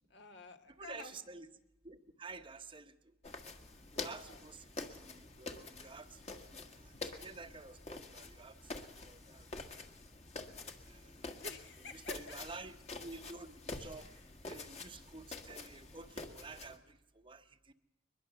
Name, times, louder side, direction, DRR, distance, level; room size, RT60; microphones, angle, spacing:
voice 1, 0.1-1.1 3.9-4.4 6.9-7.0 11.4-12.4, left 2 dB, 65° left, 6 dB, 1.7 m, -50 dB
voice 2, 0.8-1.5 1.8-2.9 4.0-4.7 5.0-9.5 10.8-11.3 11.8-14.1 14.5-17.7, right 3 dB, 25° right, 8 dB, 0.9 m, -51 dB
sound 1, 3.2-16.8, left 3 dB, 35° left, 1.7 m, -47 dB
22.5 x 21.5 x 6.9 m, 0.86 s
head